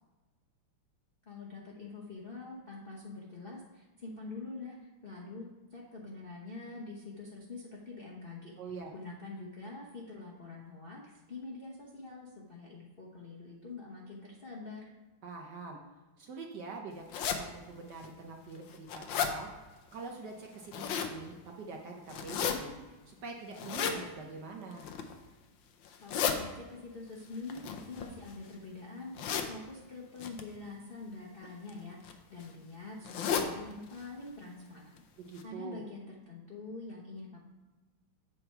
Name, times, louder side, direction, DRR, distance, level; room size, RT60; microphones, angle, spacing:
voice 1, 1.3-8.5 8.9-14.8 26.0-34.9 35.4-37.4, left 3 dB, 40° left, -5 dB, 0.8 m, -45 dB
voice 2, 8.6-8.9 15.2-15.8 16.2-17.0 17.4-19.5 19.9-22.8 23.1-24.9 35.2-35.8, right 4 dB, 65° right, 0 dB, 1.2 m, -44 dB
sound 1, 17.1-17.4 18.0-18.1 18.6-19.3 20.5-21.1 22.1-22.5 23.5-24.0 24.7-25.1 25.8-26.4 27.5-28.5 29.2-29.5 30.2-30.4 31.4-31.7 32.0-32.1 32.4-32.5 33.0-33.5 33.9-34.0 34.3-34.4 35.0-35.1 35.4-35.5, left 7 dB, 70° left, 1.3 m, -33 dB
7.9 x 5.7 x 4.5 m, 1.2 s
omnidirectional pair, 2.4 m